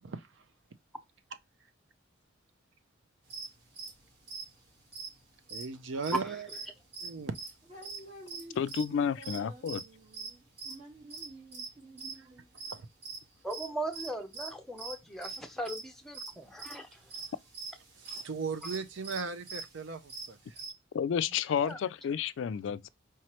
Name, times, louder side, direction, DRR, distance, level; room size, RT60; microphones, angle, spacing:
voice 1, 0.0-0.4 5.5-6.5 7.0-7.4 12.7-12.9 18.0-20.6, right 4 dB, 70° right, 0.5 m, -38 dB
sound 1, 3.3-6.7 6.9-12.2 12.6-15.0 15.2-15.4 15.7-15.8 16.1-20.7, right 4 dB, 55° right, 1.5 m, -43 dB
voice 2, 7.7-8.6 8.8-12.4, right 1 dB, 35° right, 1.3 m, -51 dB
voice 3, 8.6-9.8 20.9-22.9, left 7 dB, 70° left, 0.3 m, -31 dB
voice 4, 13.4-16.9 21.6-21.8, right 1 dB, ahead, 0.6 m, -37 dB
4.7 x 3.1 x 2.9 m
head